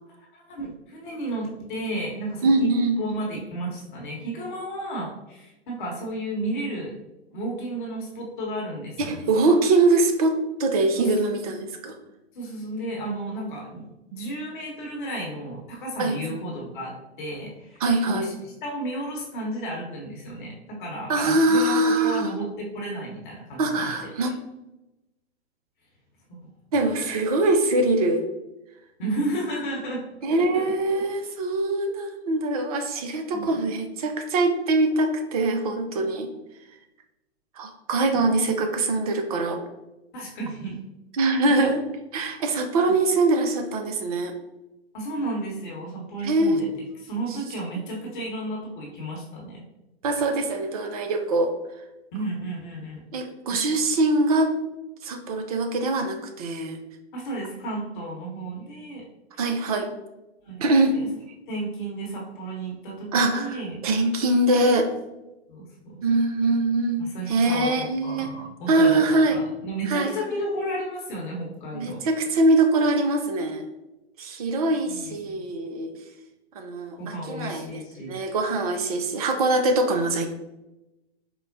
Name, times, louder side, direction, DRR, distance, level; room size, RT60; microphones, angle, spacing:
voice 1, 0.1-2.7 3.0-6.9 7.3-9.2 11.0-11.1 12.3-24.1 26.3-26.4 29.0-30.0 30.3-30.4 30.9-31.0 33.3-33.5 38.1-38.2 40.1-40.8 44.9-46.7 47.0-49.6 52.1-53.0 53.5-53.6 57.1-59.0 59.3-59.4 60.4-60.7 60.9-61.1 61.5-63.8 65.5-66.0 67.0-69.0 69.3-72.0 74.8-75.5 77.0-78.2, right 1 dB, 45° left, -2 dB, 0.9 m, -33 dB
voice 2, 2.4-3.0 9.0-11.9 16.0-16.2 17.8-18.3 21.1-22.3 23.6-24.3 26.7-28.2 30.2-36.3 37.6-39.6 41.1-41.8 42.1-44.3 46.2-46.7 50.0-51.5 53.1-54.5 55.0-56.8 59.4-59.9 60.6-60.9 63.1-64.9 66.0-69.4 69.9-70.1 71.7-73.6 74.2-75.9 76.6-77.0 77.3-77.8 78.1-80.3, right 2 dB, 35° right, 5 dB, 0.4 m, -23 dB
4.4 x 2.1 x 2.6 m, 0.97 s
figure-of-eight pair, 115°, 34 cm